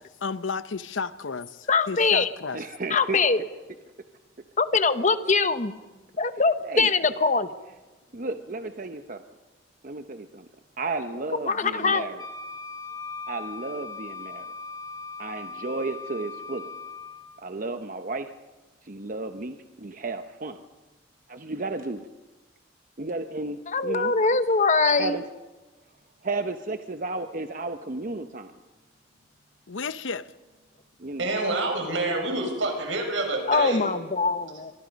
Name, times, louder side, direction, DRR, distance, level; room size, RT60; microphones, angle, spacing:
voice 1, 0.2-2.6 29.7-30.3, left 5 dB, 85° left, 0.8 m, -32 dB
voice 2, 1.7-2.3 2.9-3.4 4.6-5.7 6.2-7.5 11.5-12.1 23.7-25.2 33.5-34.7, left 4 dB, 40° left, 1.0 m, -22 dB
voice 3, 2.5-3.3 6.6-6.9 8.1-9.2 9.8-10.5 10.8-12.2 13.3-14.5 15.2-16.7 17.4-18.3 18.8-20.6 21.3-22.0 23.0-24.1 25.0-25.2 26.2-28.5 31.0-31.3, right 3 dB, 45° right, 0.8 m, -33 dB
Wind instrument woodwind instrument, 12.2-17.3, left 4 dB, 20° left, 4.3 m, -39 dB
voice 4, 31.2-33.9, right 2 dB, 85° right, 6.1 m, -27 dB
24.5 x 24.0 x 5.3 m
head